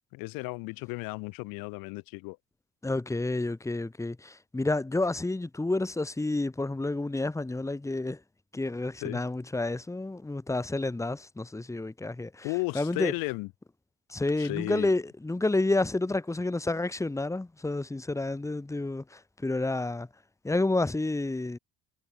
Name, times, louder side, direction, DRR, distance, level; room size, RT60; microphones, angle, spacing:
voice 1, 0.1-2.4 9.0-9.2 12.4-13.5 14.4-14.9, left 26 dB, 85° left, 5.7 m, -34 dB
voice 2, 2.8-8.2 8.5-13.1 14.1-20.1 20.4-21.6, left 2 dB, 10° left, 2.7 m, -30 dB
cardioid pair, 125°, 33 cm